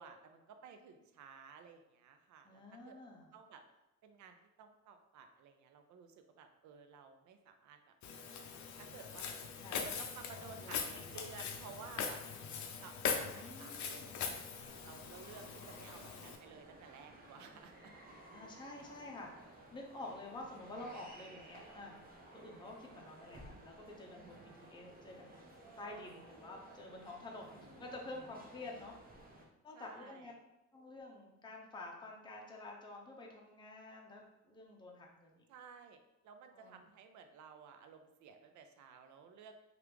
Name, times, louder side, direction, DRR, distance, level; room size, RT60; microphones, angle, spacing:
voice 1, 0.0-3.0 3.3-3.6 4.0-7.9 8.8-9.4 9.7-12.2 12.8-14.4 14.8-17.7 29.7-30.4 35.5-39.5, right 6 dB, 70° right, 7 dB, 0.5 m, -55 dB
voice 2, 2.4-3.3 9.6-9.9 10.6-11.0 13.3-14.3 15.4-15.5 15.9-16.0 18.3-22.0 22.3-25.5 25.8-29.3 29.6-30.3 30.7-35.5 36.5-36.8, left 2 dB, 15° left, -1 dB, 0.6 m, -50 dB
Walk footsteps, 8.0-16.4, left 6 dB, 70° left, 0.5 m, -42 dB
sound 1, 14.6-29.5, right 1 dB, 30° right, 0.7 m, -57 dB
2.9 x 2.5 x 3.4 m, 0.96 s
cardioid pair, 90°, 30 cm